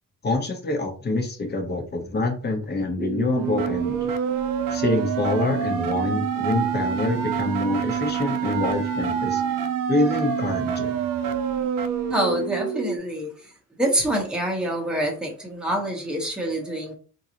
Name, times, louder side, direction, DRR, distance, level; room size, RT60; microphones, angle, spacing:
voice 1, 0.2-4.1 4.7-9.4 9.9-10.9, left 2 dB, 30° left, 3 dB, 1.0 m, -26 dB
sound 1, 3.0-13.0, right 8 dB, 65° right, 0.6 m, -26 dB
voice 2, 12.1-13.5 13.8-16.9, right 1 dB, ahead, 0 dB, 1.1 m, -26 dB
3.8 x 2.7 x 2.9 m, 0.39 s
cardioid pair, 110°, 35 cm